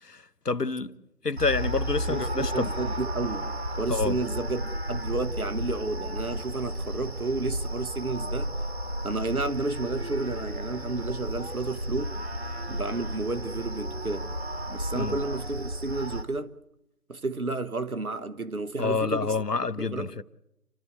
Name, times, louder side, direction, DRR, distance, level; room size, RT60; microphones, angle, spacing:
voice 1, 0.0-0.9 1.2-2.7 3.9-4.2 14.9-15.2 18.8-20.2, left 4 dB, 80° left, 1.2 m, -28 dB
sound 1, 1.4-16.2, equal, 40° right, 1.7 m, -33 dB
voice 2, 2.1-8.6 9.0-12.2 12.7-14.4 14.7-16.6 17.1-19.4 19.8-20.1, right 3 dB, 65° right, 1.4 m, -32 dB
29.5 x 13.0 x 7.9 m
figure-of-eight pair, 170°, 47 cm